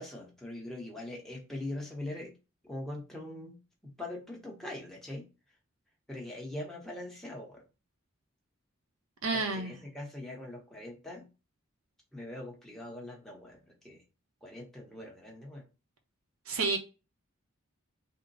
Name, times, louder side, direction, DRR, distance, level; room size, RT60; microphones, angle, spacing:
voice 1, 0.0-2.3 2.6-3.6 3.8-5.3 6.1-7.6 9.3-11.3 12.1-14.0 14.4-15.6, left 1 dB, ahead, 1.0 m, -42 dB
voice 2, 9.2-9.7 16.5-16.8, right 3 dB, 85° right, 0.9 m, -30 dB
3.7 x 2.2 x 3.9 m
head